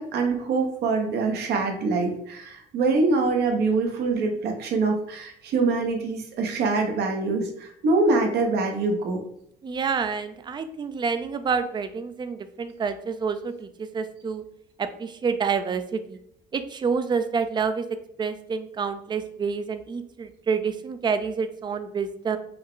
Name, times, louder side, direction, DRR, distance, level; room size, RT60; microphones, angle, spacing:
voice 1, 0.0-9.2, right 3 dB, 75° right, 2 dB, 1.1 m, -24 dB
voice 2, 9.6-14.4 14.8-16.2 16.5-17.9 18.2-22.4, right 5 dB, 25° right, 10 dB, 0.4 m, -28 dB
5.3 x 2.3 x 3.8 m, 0.74 s
cardioid pair, 110°, 17 cm